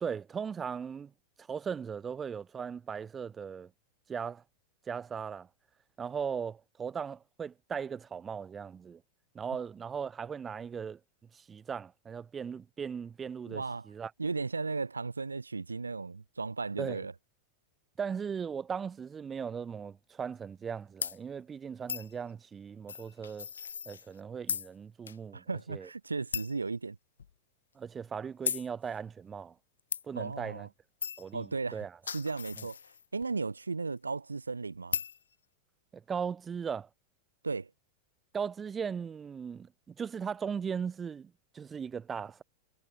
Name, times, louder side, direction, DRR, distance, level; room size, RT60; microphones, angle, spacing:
voice 1, 0.0-1.1 1.4-3.7 4.1-4.4 4.9-5.5 6.0-9.0 9.3-11.0 11.3-14.1 16.8-17.1 18.0-23.5 23.9-25.4 25.7-25.9 27.8-29.6 30.0-30.7 31.2-32.0 35.9-36.9 38.3-42.4, right 6 dB, 20° right, 0.5 m, -38 dB
voice 2, 13.5-13.9 14.2-17.1 25.3-27.0 30.2-30.7 31.3-31.9 32.1-32.8 33.1-35.0 37.4-37.7, right 4 dB, 80° right, 0.4 m, -35 dB
sound 1, 21.0-21.2 21.9-22.1 22.9-24.2 24.5-24.7 25.1-25.2 25.6-25.7 26.3-26.6 27.2-27.3 28.5-28.7 29.9-30.0 31.0-31.3 31.8-33.2 34.9-35.2, left 7 dB, 70° left, 0.8 m, -36 dB
figure-of-eight pair, 90°, 0 cm